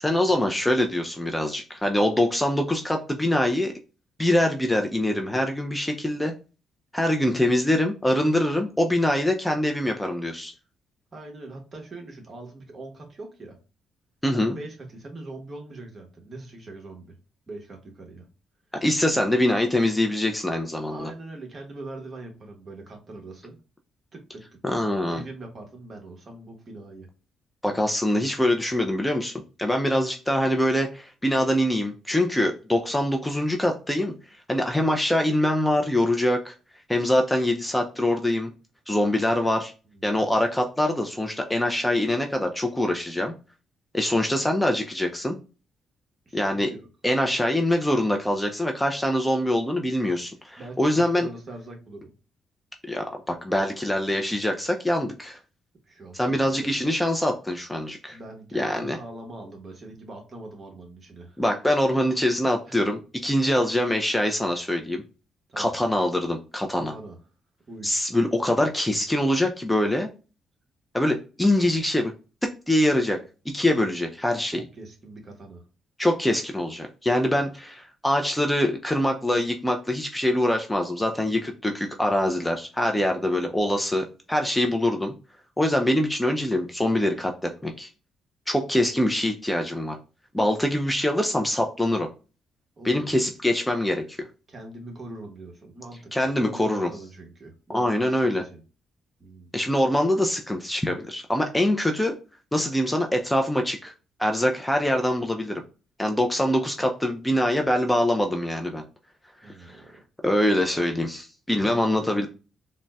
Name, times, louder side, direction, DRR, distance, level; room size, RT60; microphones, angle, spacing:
voice 1, 0.0-3.7 4.2-6.3 6.9-10.5 14.2-14.6 18.7-21.1 24.6-25.2 27.6-29.3 29.6-34.1 34.5-36.5 36.9-38.5 38.9-39.7 40.0-43.3 43.9-45.4 46.3-46.7 47.0-51.3 52.9-55.4 56.1-58.2 58.5-59.0 61.4-65.0 65.6-66.9 67.8-70.1 70.9-72.1 72.4-73.2 73.5-74.6 76.0-85.1 85.6-87.9 88.5-90.0 90.3-92.1 92.8-94.2 96.1-96.9 97.7-98.4 99.5-102.2 102.5-103.9 104.2-105.6 106.0-108.8 109.4-109.8 110.2-112.3, left 1 dB, 10° left, 3 dB, 0.4 m, -24 dB
voice 2, 11.1-13.6 14.3-17.2 17.5-18.3 20.9-23.6 24.1-24.8 25.1-27.1 39.9-40.0 46.3-46.9 50.6-52.1 55.9-56.7 58.1-61.4 62.7-62.8 65.5-65.8 66.7-67.2 67.7-68.1 74.5-75.6 92.8-93.1 94.5-98.6 99.2-99.5 109.4-109.9 111.5-112.0, right 2 dB, 40° right, 2 dB, 1.0 m, -42 dB
3.9 x 2.1 x 2.2 m, 0.33 s
cardioid pair, 90°, 0 cm